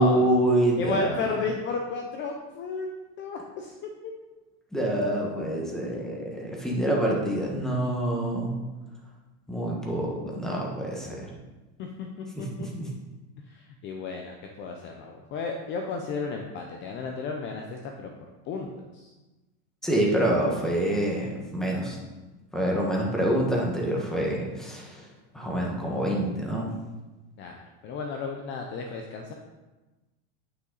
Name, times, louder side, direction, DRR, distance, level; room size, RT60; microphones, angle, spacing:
voice 1, 0.0-1.4 4.7-8.5 9.5-11.3 12.3-12.9 19.8-22.0 22.5-25.1 25.3-26.7, right 1 dB, ahead, -2 dB, 1.4 m, -26 dB
voice 2, 0.8-2.9 3.2-4.1 11.8-12.7 13.5-18.1 18.5-19.1 27.4-29.3, left 4 dB, 35° left, 2 dB, 0.7 m, -33 dB
9.4 x 5.8 x 4.0 m, 1.1 s
supercardioid pair, 150°, 35 cm